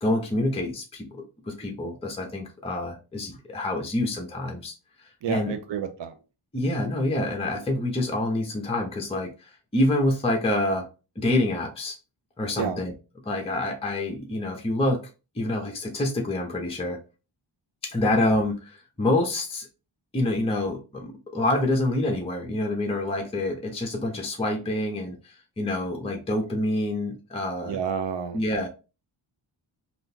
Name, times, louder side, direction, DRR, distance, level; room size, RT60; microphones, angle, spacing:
voice 1, 0.0-4.7 5.3-5.5 6.5-9.3 9.7-10.9 11.2-12.0 12.4-12.9 13.3-15.0 15.4-17.0 17.8-19.7 20.1-27.8 28.3-28.7, left 1 dB, 10° left, 3 dB, 0.6 m, -27 dB
voice 2, 5.2-6.1 12.6-12.8 27.7-28.4, right 7 dB, 60° right, 8 dB, 0.6 m, -29 dB
3.6 x 2.5 x 2.7 m, 0.31 s
wide cardioid pair, 85°, 50 cm